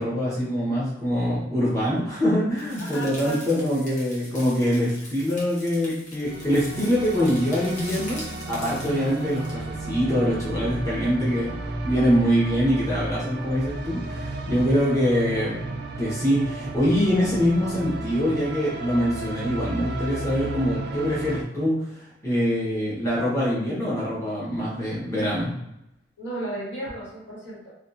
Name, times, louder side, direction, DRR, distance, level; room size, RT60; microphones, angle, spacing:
voice 1, 0.0-8.2 8.5-11.5 11.8-15.6 16.0-25.5, equal, 20° left, -8 dB, 0.8 m, -24 dB
sound 1, 2.6-9.5, left 1 dB, 45° left, 0.8 m, -42 dB
voice 2, 2.8-3.4 26.2-27.7, right 1 dB, 75° left, -7 dB, 1.3 m, -34 dB
sound 2, 6.2-21.4, right 2 dB, 60° right, 0.4 m, -33 dB
2.7 x 2.2 x 2.5 m, 0.81 s
head